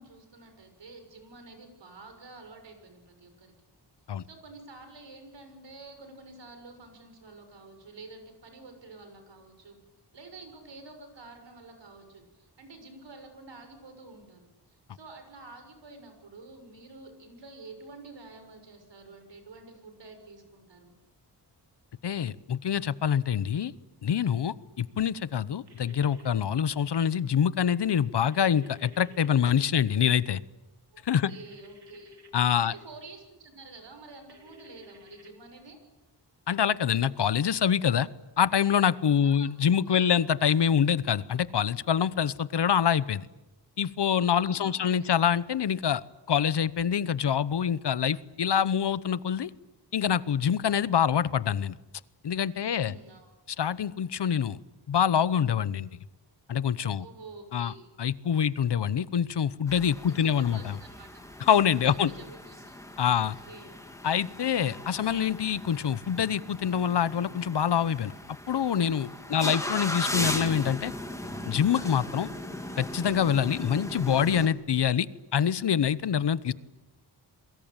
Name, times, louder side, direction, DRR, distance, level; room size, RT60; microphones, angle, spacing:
voice 1, 0.0-3.5 4.2-9.8 10.1-20.9 30.9-32.2 32.6-35.8 39.2-40.1 44.4-45.1 52.7-53.3 56.9-57.8 59.9-61.2 62.0-62.8 63.1-63.7, right 3 dB, 80° right, 6 dB, 6.5 m, -49 dB
voice 2, 22.0-23.7 24.0-30.4 31.0-31.3 32.3-32.7 36.5-38.1 38.4-43.3 43.8-46.0 46.3-49.5 49.9-51.8 52.2-52.9 53.5-54.6 54.9-55.9 56.5-57.0 57.5-57.7 58.0-60.8 61.5-62.1 63.0-63.4 64.0-68.1 68.5-70.9 71.5-72.3 72.8-76.5, left 8 dB, 70° left, 17 dB, 1.0 m, -25 dB
sound 1, 25.7-26.3 28.3-29.3 31.3-32.3 34.3-35.3, left 4 dB, 65° right, 3.1 m, -53 dB
sound 2, 59.7-74.5, left 1 dB, 5° left, 2.8 m, -38 dB
28.5 x 23.0 x 9.0 m, 1.0 s
wide cardioid pair, 155°, 42 cm